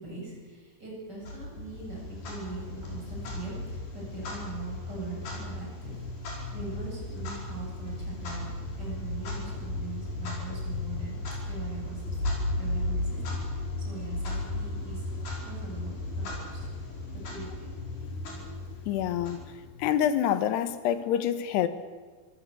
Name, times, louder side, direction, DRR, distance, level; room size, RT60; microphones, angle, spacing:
voice 1, 0.0-5.9 6.2-8.5 8.7-11.2 11.5-12.1 12.6-13.2 13.6-15.0 15.4-16.7 17.1-17.7, right 4 dB, 20° right, -3 dB, 8.2 m, -42 dB
Clock, 1.2-19.9, left 2 dB, 50° left, 6.7 m, -35 dB
voice 2, 18.9-19.4 19.8-21.7, left 10 dB, 70° left, 11 dB, 2.8 m, -26 dB
25.0 x 17.0 x 8.3 m, 1.5 s
omnidirectional pair, 5.6 m